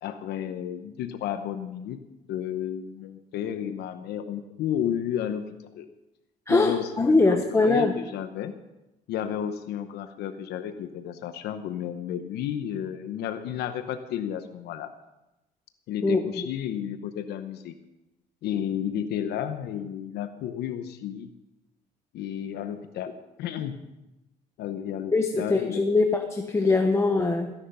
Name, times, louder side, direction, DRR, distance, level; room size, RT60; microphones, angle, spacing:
voice 1, 0.0-2.0 2.3-5.9 6.5-8.5 9.1-14.9 15.9-17.7 18.4-21.3 22.1-23.1 23.4-23.8 24.6-25.9, left 9 dB, 80° left, 9 dB, 0.9 m, -32 dB
voice 2, 6.5-7.9 16.0-16.5 25.1-27.5, left 3 dB, 15° left, 4 dB, 1.0 m, -22 dB
15.0 x 10.5 x 5.5 m, 0.98 s
cardioid pair, 110°, 17 cm